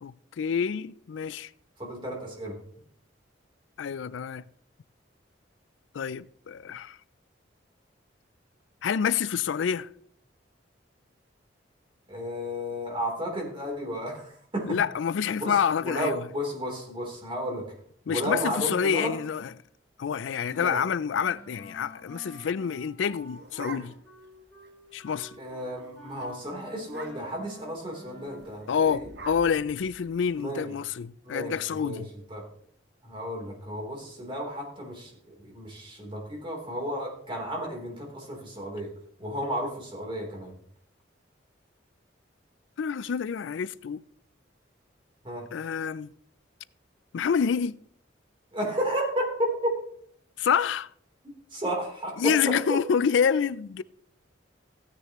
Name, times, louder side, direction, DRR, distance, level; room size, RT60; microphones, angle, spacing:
voice 1, 0.0-1.5 3.8-4.4 5.9-7.0 8.8-9.9 14.7-16.3 18.1-19.5 20.0-23.9 24.9-25.4 28.7-32.1 42.8-44.0 45.5-46.1 47.1-47.8 50.4-50.9 52.2-53.8, left 7 dB, 80° left, 0.4 m, -27 dB
voice 2, 1.8-2.6 12.1-14.8 15.4-17.7 18.1-19.1 20.5-20.8 25.4-29.1 30.4-30.7 31.2-32.0 32.3-32.4 33.0-38.9 39.2-40.5 45.2-45.5 48.5-49.8 51.5-52.8, equal, 30° right, 3.5 m, -33 dB
Wind instrument woodwind instrument, 21.1-28.6, equal, 5° left, 4.3 m, -50 dB
sound 1, 23.0-24.3 24.6-24.7 25.0-25.3 25.7-25.9 26.2-26.3 26.8-27.5 28.3-30.4, right 3 dB, 65° right, 1.2 m, -45 dB
15.0 x 9.6 x 3.1 m
head